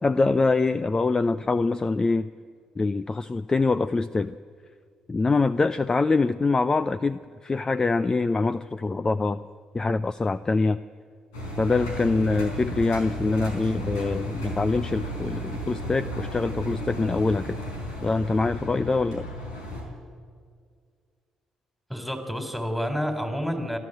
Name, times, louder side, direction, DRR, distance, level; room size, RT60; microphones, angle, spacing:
voice 1, 0.0-2.3 2.8-4.4 5.1-9.4 9.7-10.8 11.6-17.6 18.0-19.3, left 3 dB, 30° left, 14 dB, 0.6 m, -24 dB
Engine, 11.3-19.8, equal, 85° left, 4.5 m, -34 dB
voice 2, 21.9-23.8, equal, 5° left, 6 dB, 3.9 m, -29 dB
28.0 x 12.0 x 7.9 m, 2.1 s
hypercardioid pair, 50°, 2 cm